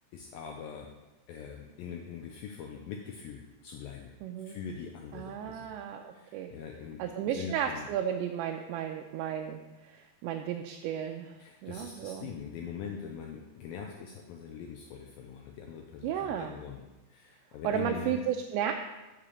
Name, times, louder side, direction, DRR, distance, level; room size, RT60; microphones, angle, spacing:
voice 1, 0.1-0.9 1.3-4.1 4.4-5.8 6.1-7.9 11.4-18.2, left 6 dB, 90° left, 1 dB, 2.0 m, -42 dB
voice 2, 4.2-4.6 5.1-6.5 7.0-12.3 16.0-16.5 17.6-18.7, right 9 dB, 90° right, 3 dB, 2.8 m, -34 dB
7.4 x 5.0 x 6.9 m, 1.1 s
omnidirectional pair, 5.0 m